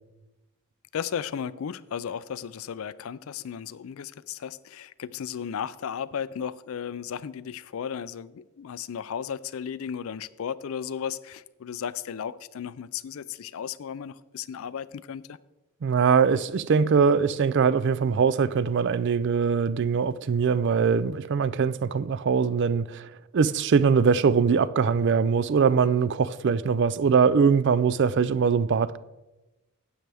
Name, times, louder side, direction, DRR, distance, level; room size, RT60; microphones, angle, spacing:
voice 1, 0.9-15.4, left 8 dB, 70° left, 0.4 m, -35 dB
voice 2, 15.8-29.0, right 6 dB, 50° right, 0.4 m, -22 dB
12.5 x 8.8 x 3.4 m
head